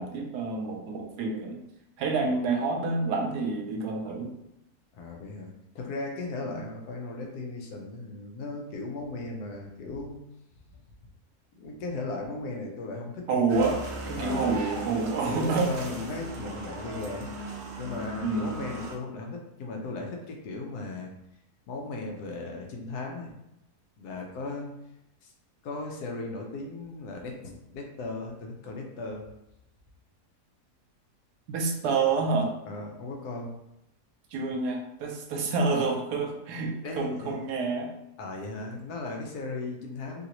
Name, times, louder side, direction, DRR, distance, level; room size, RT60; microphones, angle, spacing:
voice 1, 0.0-1.6 2.0-4.3 6.4-6.7 13.3-13.8 14.1-15.8 18.2-18.6 31.5-32.5 34.3-37.9, right 4 dB, 85° right, 2 dB, 1.2 m, -28 dB
voice 2, 4.9-10.2 11.6-13.4 14.2-14.6 15.2-17.3 17.8-21.1 21.7-23.4 24.0-24.8 25.2-25.3 25.6-29.3 32.7-33.5 36.8-37.4 38.2-40.3, left 3 dB, 80° left, 1 dB, 1.2 m, -37 dB
sound 1, 13.5-19.0, right 2 dB, 65° right, 0.6 m, -38 dB
3.1 x 2.6 x 2.8 m, 0.84 s
omnidirectional pair, 1.7 m